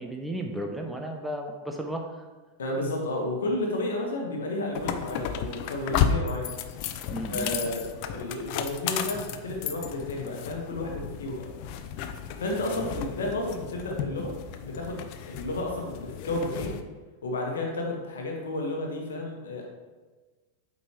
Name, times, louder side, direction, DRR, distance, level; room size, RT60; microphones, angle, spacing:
voice 1, 0.0-2.2 7.1-7.5 12.7-12.9, right 1 dB, 5° right, 2 dB, 0.7 m, -34 dB
voice 2, 2.6-6.5 7.3-11.4 12.4-16.7 17.2-19.6, left 2 dB, 65° left, 0 dB, 1.4 m, -32 dB
sound 1, 4.7-16.8, left 8 dB, 45° left, 0.5 m, -33 dB
8.2 x 5.2 x 3.1 m, 1.3 s
figure-of-eight pair, 90°, 0 cm